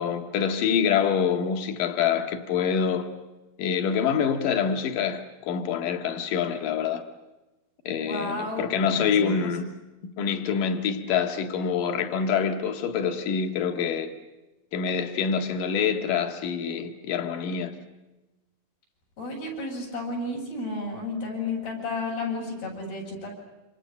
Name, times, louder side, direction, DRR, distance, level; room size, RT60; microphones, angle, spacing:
voice 1, 0.0-3.1 3.6-7.1 7.8-9.7 10.2-14.1 14.7-17.8, left 7 dB, 65° left, 3.3 m, -26 dB
voice 2, 8.0-9.4 19.2-23.3, left 2 dB, 80° left, 9.8 m, -32 dB
28.5 x 27.0 x 6.7 m
omnidirectional pair, 4.2 m